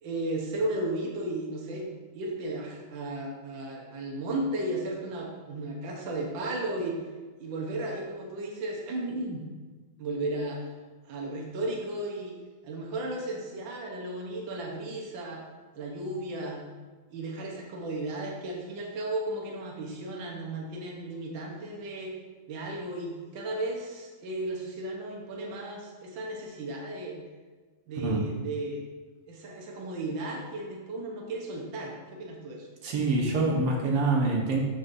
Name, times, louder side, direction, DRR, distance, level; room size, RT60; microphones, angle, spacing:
voice 1, 0.0-7.0 7.4-9.5 10.0-10.6 11.1-12.3 12.6-15.4 15.7-16.6 17.1-22.1 22.5-27.2 27.9-28.8 29.3-32.7, right 2 dB, 80° right, -1 dB, 1.1 m, -34 dB
voice 2, 32.8-34.6, right 3 dB, 55° right, -2 dB, 1.8 m, -25 dB
12.0 x 5.5 x 2.7 m, 1.3 s
omnidirectional pair, 3.7 m